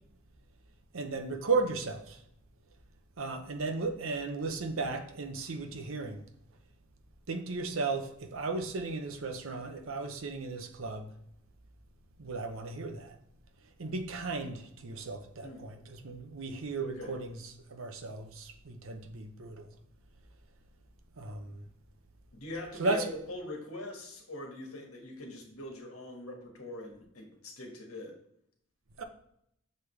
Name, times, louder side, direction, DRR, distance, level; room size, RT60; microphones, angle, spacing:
voice 1, 0.9-2.2 3.2-6.2 7.3-11.1 12.2-13.1 13.8-17.4 17.7-19.7 21.2-21.6 22.8-23.0 29.0-29.1, right 3 dB, 65° right, 0.7 m, -35 dB
voice 2, 16.8-17.2 22.3-28.1, left 1 dB, 75° left, 1.6 m, -42 dB
6.6 x 5.0 x 3.2 m
head